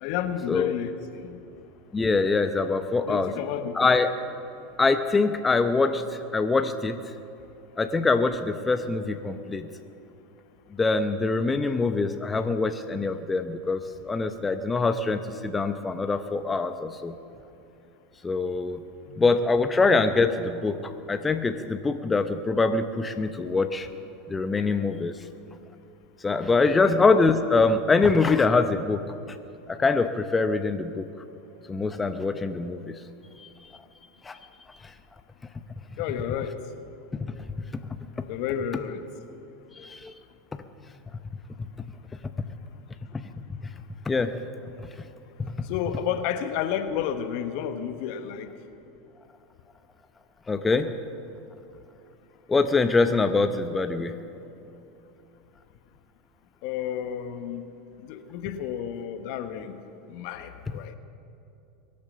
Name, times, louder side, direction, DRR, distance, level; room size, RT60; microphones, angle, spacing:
voice 1, 0.0-1.4 3.0-3.9 19.1-19.2 26.8-26.9 36.0-36.5 38.3-39.0 45.6-48.5 56.6-57.6 58.0-59.7 60.1-60.9, left 9 dB, 60° left, 9 dB, 1.2 m, -31 dB
voice 2, 1.9-3.3 3.8-4.1 4.8-6.0 6.3-7.0 7.8-9.7 10.8-17.1 18.2-18.8 19.2-23.9 24.3-25.1 26.2-29.0 29.3-29.4 29.7-31.1 31.7-32.9 33.4-33.5 34.2-34.4 37.1-37.3 39.8-40.1 43.1-43.2 44.1-44.3 45.4-45.5 50.5-50.9 52.5-54.1, left 3 dB, 20° left, 8 dB, 0.8 m, -24 dB
23.0 x 8.7 x 6.8 m, 2.7 s
hypercardioid pair, 90°, 0 cm